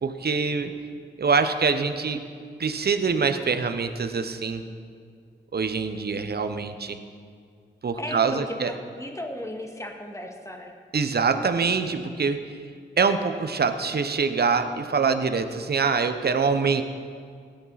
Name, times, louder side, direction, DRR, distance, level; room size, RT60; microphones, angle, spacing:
voice 1, 0.0-0.7 1.2-2.2 2.6-4.6 5.5-7.0 7.8-8.7 10.9-12.4 13.0-16.8, right 5 dB, 50° right, 8 dB, 1.0 m, -24 dB
voice 2, 8.0-8.4 9.0-10.7, left 1 dB, 15° left, 2 dB, 1.9 m, -35 dB
17.0 x 10.0 x 4.2 m, 2.1 s
supercardioid pair, 40°, 21 cm